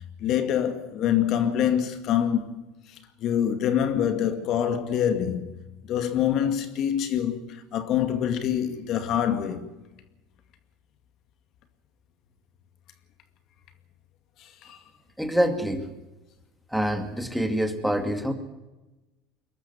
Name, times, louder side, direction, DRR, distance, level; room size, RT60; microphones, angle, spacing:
voice 1, 0.2-2.6 3.2-5.5 5.9-9.7 14.4-14.8, left 9 dB, 50° left, 2.2 m, -25 dB
voice 2, 15.2-15.9 16.7-18.3, equal, ahead, 2.3 m, -26 dB
23.0 x 13.0 x 9.7 m
supercardioid pair, 110°, 0 cm